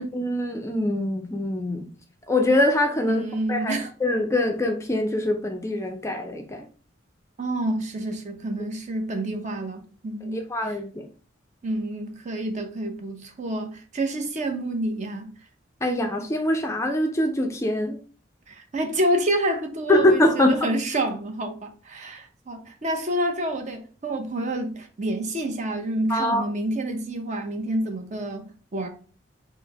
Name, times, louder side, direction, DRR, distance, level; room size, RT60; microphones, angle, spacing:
voice 1, 0.0-1.9 2.3-3.7 4.0-6.7 10.3-11.1 15.8-18.0 19.9-20.6 26.1-26.4, left 1 dB, 15° left, 0.4 m, -23 dB
voice 2, 3.1-3.9 7.4-10.8 11.6-15.3 18.5-28.5 28.7-28.9, right 1 dB, 35° right, 0.6 m, -28 dB
4.4 x 2.0 x 3.4 m
head